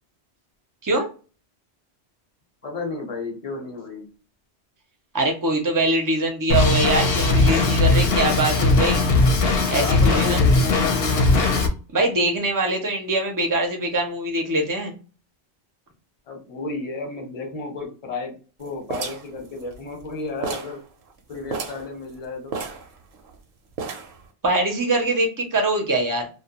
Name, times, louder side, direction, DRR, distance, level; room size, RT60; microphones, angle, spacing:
voice 1, 2.6-4.1 9.8-11.5 16.3-18.3 18.6-20.8 21.3-22.5, left 3 dB, 35° left, 2 dB, 0.8 m, -32 dB
voice 2, 5.1-9.0 9.7-10.4 11.9-15.0 24.4-26.3, right 2 dB, 30° right, 3 dB, 0.4 m, -23 dB
Drum kit, 6.5-11.7, left 3 dB, 65° left, 0.7 m, -19 dB
sound 1, 18.9-20.1 20.4-20.8 21.1-21.2 21.5-21.9 22.5-23.4 23.8-24.2, right 4 dB, 65° right, 0.7 m, -32 dB
2.2 x 2.1 x 2.8 m, 0.35 s
omnidirectional pair, 1.1 m